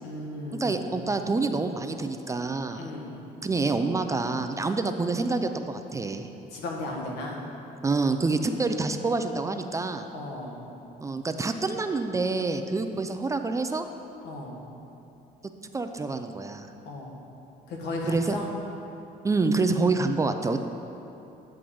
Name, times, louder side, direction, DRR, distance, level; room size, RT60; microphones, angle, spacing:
voice 1, 0.0-1.2 2.7-3.2 6.5-7.4 10.1-10.7 14.2-14.6 16.8-17.2 17.7-18.5, left 2 dB, 85° left, -1 dB, 1.5 m, -35 dB
voice 2, 0.6-2.9 3.4-6.3 7.8-10.1 11.0-13.9 15.7-16.7 18.1-18.4 19.2-20.6, right 3 dB, 20° right, 7 dB, 0.4 m, -27 dB
9.9 x 7.7 x 3.8 m, 2.8 s
cardioid pair, 110°, 17 cm